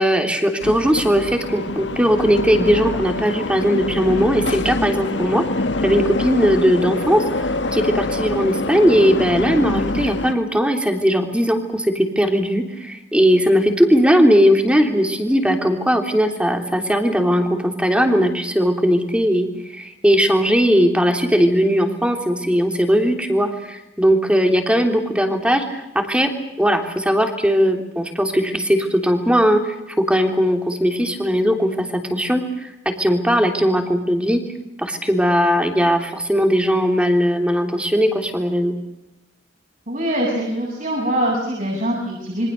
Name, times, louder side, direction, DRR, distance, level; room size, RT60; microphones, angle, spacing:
voice 1, 0.0-5.4 5.8-26.3 26.6-34.4 34.8-38.7, equal, 5° right, 5 dB, 3.3 m, -18 dB
sound 1, 0.6-10.3, left 2 dB, 80° left, 1.6 m, -25 dB
voice 2, 39.9-42.5, right 1 dB, 50° right, -3 dB, 8.0 m, -23 dB
27.5 x 24.5 x 6.7 m, 0.90 s
head